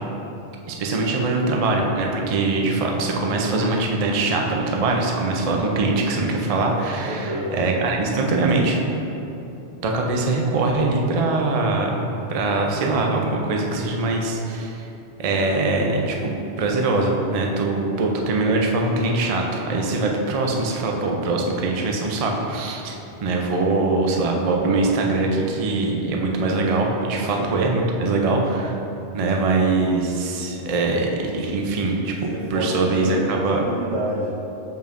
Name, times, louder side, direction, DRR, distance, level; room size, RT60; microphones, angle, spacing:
voice 1, 0.7-8.8 9.8-14.9 15.2-22.9 23.2-28.8 29.1-33.6, right 3 dB, 45° right, 0 dB, 0.5 m, -22 dB
voice 2, 7.0-7.5 27.4-27.7 32.3-34.3, equal, 80° right, -6 dB, 1.5 m, -28 dB
6.9 x 5.3 x 2.5 m, 2.9 s
omnidirectional pair, 1.2 m